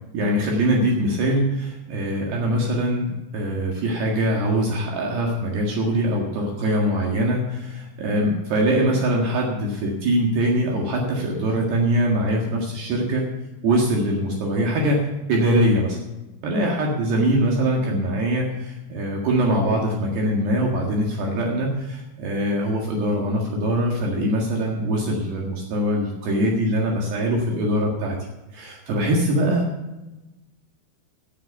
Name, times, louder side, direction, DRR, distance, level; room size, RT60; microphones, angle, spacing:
voice 1, 0.1-13.2 13.6-16.0 16.4-28.2 28.5-29.7, right 1 dB, 65° right, -1 dB, 3.7 m, -22 dB
17.0 x 7.9 x 5.8 m, 1.0 s
omnidirectional pair, 5.5 m